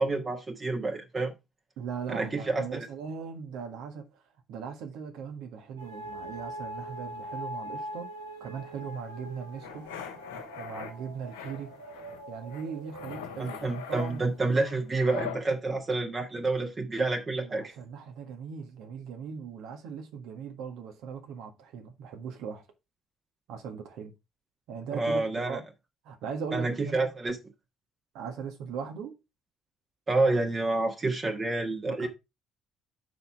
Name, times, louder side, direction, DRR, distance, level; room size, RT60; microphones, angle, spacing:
voice 1, 0.0-1.3 2.1-2.9 13.4-17.7 24.9-25.6 26.5-27.4 30.1-32.1, right 2 dB, 30° right, 1.5 m, -28 dB
voice 2, 1.8-4.2 4.5-8.1 8.4-9.9 10.6-11.7 12.3-14.3 17.4-22.6 23.5-24.1 24.7-25.6 26.0-27.1 28.1-29.2 31.8-32.1, right 6 dB, 60° right, 1.6 m, -39 dB
sound 1, 5.8-14.6, right 1 dB, 85° right, 1.5 m, -43 dB
sound 2, 9.6-10.9 11.3-12.2 12.5-15.4, left 8 dB, 75° left, 1.5 m, -41 dB
6.8 x 5.5 x 4.7 m
figure-of-eight pair, 50°, 0 cm